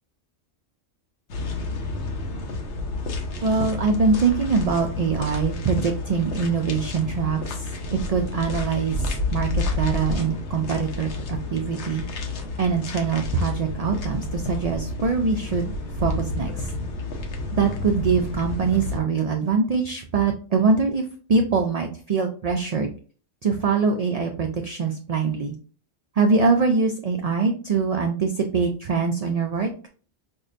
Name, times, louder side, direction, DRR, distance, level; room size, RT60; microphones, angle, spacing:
sound 1, 1.3-19.0, left 2 dB, 85° left, 1.0 m, -30 dB
voice 1, 3.4-12.0 12.6-16.7 17.5-22.9 23.4-25.5 26.2-29.7, right 5 dB, 60° right, 4 dB, 0.4 m, -23 dB
5.3 x 2.1 x 2.5 m, 0.40 s
omnidirectional pair, 1.1 m